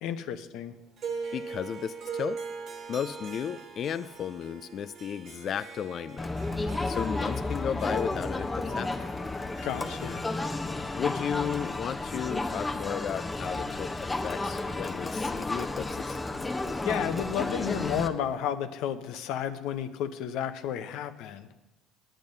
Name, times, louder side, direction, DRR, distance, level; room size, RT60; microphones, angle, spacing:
voice 1, 0.0-0.7 9.6-10.2 16.8-21.5, left 9 dB, 70° left, 9 dB, 0.7 m, -32 dB
Harp, 1.0-12.3, right 5 dB, 55° right, 1.4 m, -42 dB
voice 2, 1.3-2.4 2.9-6.3 6.8-9.1 10.9-16.2, left 8 dB, 50° left, 13 dB, 0.3 m, -34 dB
Crowd, 6.2-18.1, left 2 dB, 15° left, 0.8 m, -32 dB
9.0 x 8.9 x 5.3 m, 0.98 s
supercardioid pair, 90°, 0 cm